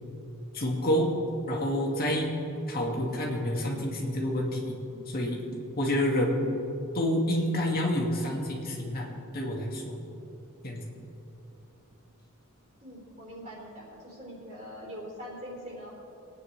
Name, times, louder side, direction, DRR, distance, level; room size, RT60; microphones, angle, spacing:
voice 1, 0.5-1.1 1.5-2.3 2.7-4.8 5.1-5.4 5.8-6.4 6.9-9.1 9.3-10.0 10.6-10.8, left 1 dB, 45° left, -2 dB, 2.0 m, -28 dB
voice 2, 12.8-16.0, equal, 35° right, -6 dB, 3.5 m, -43 dB
23.0 x 9.4 x 3.3 m, 2.9 s
head